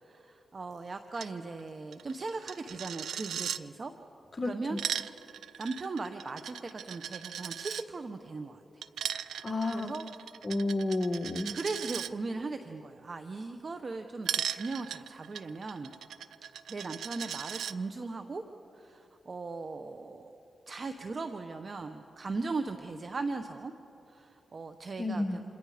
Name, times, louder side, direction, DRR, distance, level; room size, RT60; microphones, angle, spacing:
voice 1, 0.0-3.9 4.4-4.8 5.6-8.8 9.7-10.0 11.5-15.9 16.7-18.4 18.7-20.4 20.7-23.7 24.1-25.5, right 3 dB, 50° right, 7 dB, 1.0 m, -38 dB
Coin (dropping), 1.1-1.3 1.6-1.7 1.9-3.6 4.5-7.8 8.8-12.1 14.2-17.7, right 9 dB, 90° right, 0.4 m, -38 dB
voice 2, 4.4-4.8 9.4-9.9 10.4-11.5 25.0-25.4, left 2 dB, 30° left, 5 dB, 1.7 m, -31 dB
27.5 x 26.0 x 5.1 m, 2.8 s
cardioid pair, 60°, 0 cm